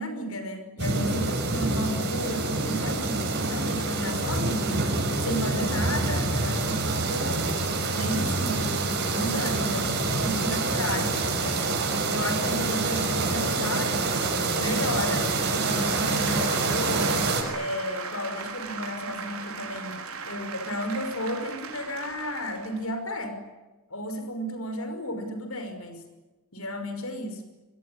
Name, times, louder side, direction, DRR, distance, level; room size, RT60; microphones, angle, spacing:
voice 1, 0.0-4.9 5.2-7.5 7.9-8.8 9.1-11.8 12.1-14.3 14.6-17.2 17.5-23.4 23.9-26.0 26.5-27.4, equal, 75° left, 8 dB, 5.7 m, -33 dB
sound 1, 0.8-17.4, right 3 dB, 50° right, 6.1 m, -26 dB
sound 2, 14.8-22.9, right 5 dB, 75° right, 4.6 m, -38 dB
26.5 x 21.5 x 9.9 m, 1.1 s
head